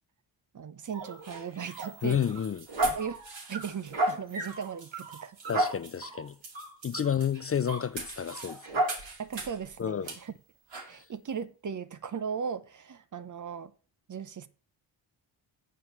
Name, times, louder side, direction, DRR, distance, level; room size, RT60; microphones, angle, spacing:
voice 1, 0.5-2.2 3.0-3.2 3.5-5.4 9.2-10.3 10.9-13.7 14.1-14.5, right 7 dB, 40° right, 0.9 m, -37 dB
sound 1, 0.9-9.6 10.1-10.2 10.7-10.9, right 2 dB, 70° right, 2.6 m, -34 dB
voice 2, 2.0-2.7 5.5-6.3 6.8-8.8 9.8-10.2 10.9-11.1, left 8 dB, 30° left, 0.5 m, -30 dB
7.3 x 4.9 x 7.2 m
supercardioid pair, 60°, 46 cm